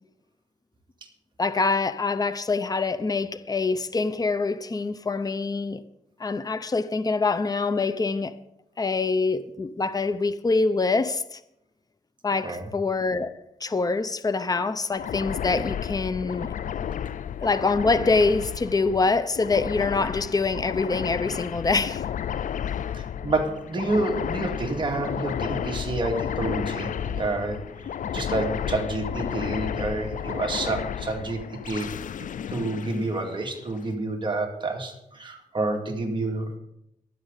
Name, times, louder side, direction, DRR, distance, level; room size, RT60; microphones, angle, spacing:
voice 1, 1.4-5.8 6.2-8.3 8.8-11.4 12.2-13.3 13.6-16.5 17.4-22.0, left 3 dB, 25° left, 0.7 m, -25 dB
sound 1, 14.9-33.8, left 9 dB, 65° left, 0.4 m, -32 dB
voice 2, 22.8-27.6 28.1-31.9 32.5-36.6, right 2 dB, 35° right, 2.3 m, -29 dB
22.5 x 7.8 x 4.1 m
wide cardioid pair, 95°, 14 cm